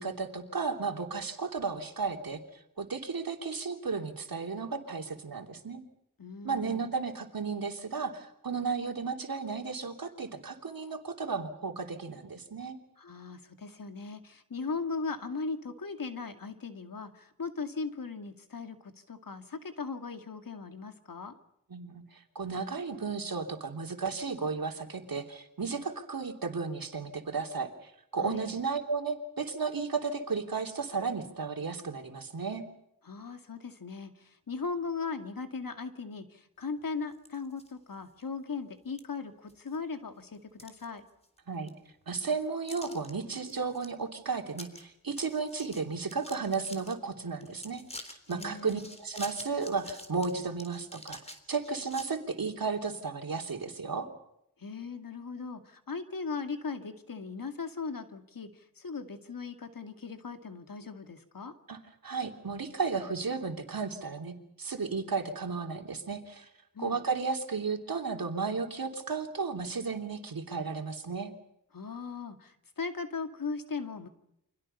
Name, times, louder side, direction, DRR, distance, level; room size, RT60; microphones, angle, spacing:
voice 1, 0.0-5.8 6.4-12.8 21.7-32.6 41.5-41.7 42.1-54.1 61.7-66.5 66.8-71.3, right 4 dB, 70° right, 4 dB, 3.1 m, -34 dB
voice 2, 6.2-6.8 13.0-21.4 28.2-28.6 33.0-41.0 48.3-48.8 54.6-61.5 66.7-67.0 71.7-74.1, left 4 dB, 65° left, 7 dB, 2.4 m, -38 dB
sound 1, 37.1-37.7 38.2-38.3 39.0-39.1 39.5-40.0 40.3-41.4 41.7-41.8 42.7-43.1 43.5-43.9 44.2-44.3 44.5-44.8 45.1-46.9 47.4-52.1, left 1 dB, 15° left, 3.7 m, -47 dB
29.0 x 25.0 x 5.6 m, 0.79 s
wide cardioid pair, 70°, 36 cm